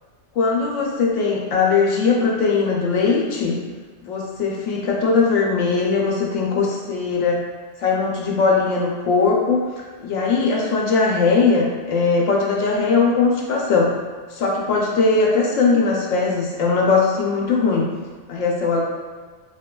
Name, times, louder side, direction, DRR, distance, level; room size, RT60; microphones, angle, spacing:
voice 1, 0.3-3.6 4.0-7.4 7.8-9.6 10.0-13.9 14.3-17.9 18.3-18.8, left 4 dB, 75° left, -2 dB, 0.9 m, -19 dB
3.0 x 2.6 x 2.2 m, 1.4 s
omnidirectional pair, 1.3 m